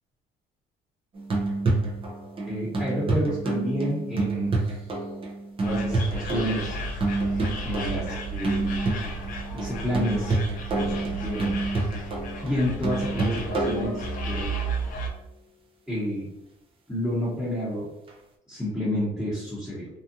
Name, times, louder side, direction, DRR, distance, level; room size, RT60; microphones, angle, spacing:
sound 1, 1.2-14.5 18.1-18.2, right 2 dB, 30° right, 0.6 m, -28 dB
voice 1, 2.4-4.8 5.6-6.8 7.6-8.7 9.5-10.4 10.8-11.5 12.4-14.5 15.9-16.2 16.9-17.9 18.5-19.9, equal, ahead, -11 dB, 1.1 m, -29 dB
sound 2, 5.6-15.1, right 2 dB, 55° left, 0.6 m, -34 dB
2.7 x 2.4 x 2.5 m, 0.86 s
cardioid pair, 110°, 17 cm